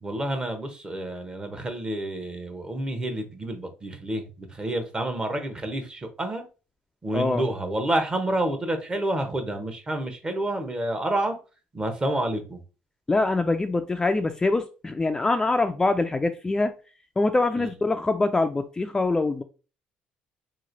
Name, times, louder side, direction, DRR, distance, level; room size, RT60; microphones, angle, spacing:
voice 1, 0.0-6.4 7.0-11.4 11.7-12.6 17.6-17.7, right 1 dB, 25° right, 6 dB, 0.9 m, -29 dB
voice 2, 7.1-7.4 13.1-16.7 17.2-19.4, left 3 dB, 15° left, 7 dB, 0.3 m, -24 dB
3.0 x 2.4 x 3.9 m, 0.34 s
supercardioid pair, 85°, 4 cm